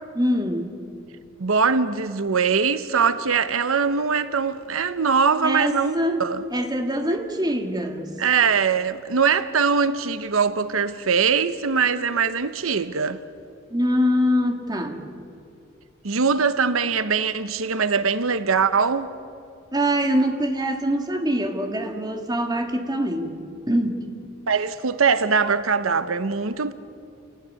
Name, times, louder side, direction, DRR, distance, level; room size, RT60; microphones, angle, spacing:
voice 1, 0.1-0.7 5.4-6.2 6.5-8.1 13.7-15.0 19.7-23.4 23.7-24.0, equal, 20° right, 2.1 m, -24 dB
voice 2, 1.4-6.4 8.2-13.2 16.0-19.1 24.5-26.7, right 5 dB, 85° right, 1.0 m, -22 dB
28.0 x 17.5 x 9.7 m
head